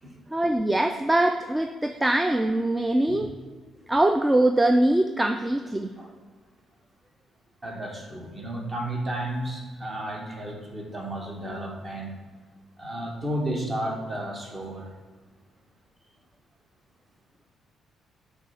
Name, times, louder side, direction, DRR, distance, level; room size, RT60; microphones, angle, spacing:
voice 1, 0.3-3.3 3.9-5.9, right 1 dB, 15° right, 6 dB, 0.3 m, -22 dB
voice 2, 7.6-12.1 12.8-14.9, right 1 dB, 30° right, 1 dB, 1.3 m, -33 dB
6.0 x 3.3 x 5.7 m, 1.4 s
cardioid pair, 90°, 0 cm